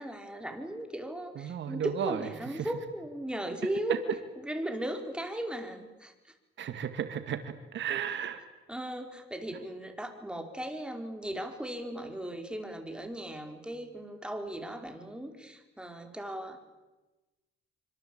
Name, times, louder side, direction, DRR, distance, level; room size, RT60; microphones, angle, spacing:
voice 1, 0.0-4.0 4.4-6.1 8.7-16.6, right 1 dB, 5° right, 5 dB, 5.0 m, -37 dB
voice 2, 1.4-2.3 2.6-2.7 3.9-4.0 6.6-8.4, right 9 dB, 70° right, 9 dB, 2.3 m, -33 dB
26.0 x 25.5 x 8.9 m, 1.1 s
cardioid pair, 90°, 20 cm